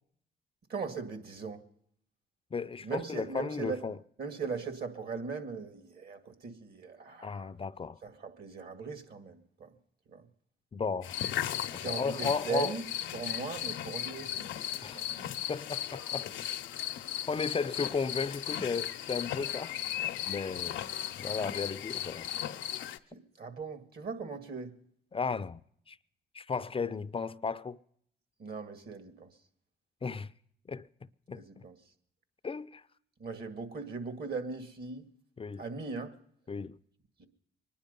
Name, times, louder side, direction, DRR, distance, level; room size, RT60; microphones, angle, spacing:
voice 1, 0.7-1.6 2.8-3.8 4.2-7.5 8.0-9.7 10.1-10.3 11.7-12.8 13.1-14.5 14.9-15.1 23.1-24.7 28.4-29.3 31.3-31.8 33.2-35.1 35.6-36.1 37.2-37.3, right 5 dB, 55° right, 2.1 m, -39 dB
voice 2, 2.5-4.0 7.2-8.0 10.7-11.1 11.7-12.7 14.8-15.0 15.5-16.3 17.3-19.7 20.3-20.8 21.2-22.3 25.1-25.6 25.9-26.0 26.3-27.8 30.0-30.3 30.7-30.9 31.3-31.6 32.4-32.8 35.4-35.6 36.5-36.8, left 5 dB, 30° left, 0.5 m, -34 dB
sound 1, 11.0-23.0, left 11 dB, 85° left, 0.7 m, -36 dB
23.5 x 10.5 x 5.3 m
cardioid pair, 80°, 19 cm